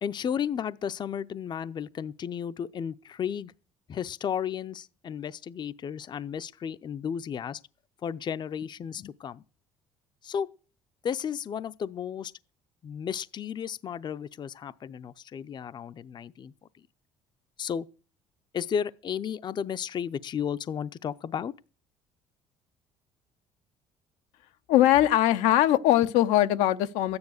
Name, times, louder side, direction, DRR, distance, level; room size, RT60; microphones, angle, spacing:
voice 1, 0.0-3.5 3.9-7.6 8.0-9.4 10.2-10.5 11.0-12.3 12.8-16.5 17.6-17.9 18.5-21.5, left 8 dB, 40° left, 0.6 m, -33 dB
voice 2, 24.7-27.2, left 13 dB, 90° left, 0.7 m, -21 dB
13.0 x 9.7 x 6.5 m
cardioid pair, 95°, 12 cm